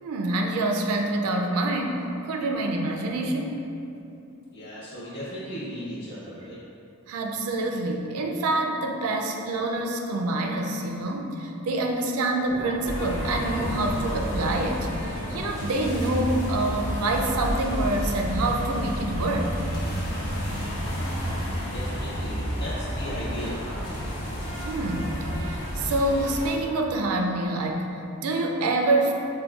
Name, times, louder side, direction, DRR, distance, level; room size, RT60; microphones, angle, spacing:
voice 1, 0.0-3.6 7.1-19.5 20.1-20.2 24.7-29.1, right 2 dB, 85° right, 2 dB, 0.4 m, -26 dB
voice 2, 4.5-6.6 21.7-24.1, equal, 50° left, -10 dB, 1.1 m, -36 dB
sound 1, 12.5-17.9, equal, 30° left, 0.9 m, -43 dB
sound 2, 12.8-26.5, equal, 70° left, 0.8 m, -30 dB
5.1 x 2.2 x 2.3 m, 2.7 s
head